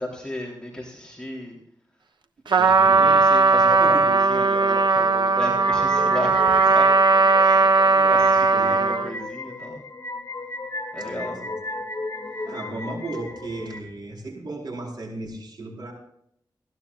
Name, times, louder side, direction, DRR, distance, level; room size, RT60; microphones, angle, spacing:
voice 1, 0.0-1.6 2.6-6.9 7.4-9.8 10.9-11.4 12.4-12.5, left 1 dB, 10° left, -3 dB, 3.6 m, -34 dB
Trumpet, 2.5-9.1, right 4 dB, 85° right, 1.1 m, -18 dB
voice 2, 2.6-3.1 3.8-4.0 7.9-8.3 8.5-8.8 11.0-11.5 12.4-15.9, right 2 dB, 65° right, -1 dB, 4.6 m, -35 dB
sound 1, 5.6-13.8, left 2 dB, 40° left, 2.3 m, -35 dB
19.5 x 16.5 x 2.5 m, 0.72 s
wide cardioid pair, 105°, 8 cm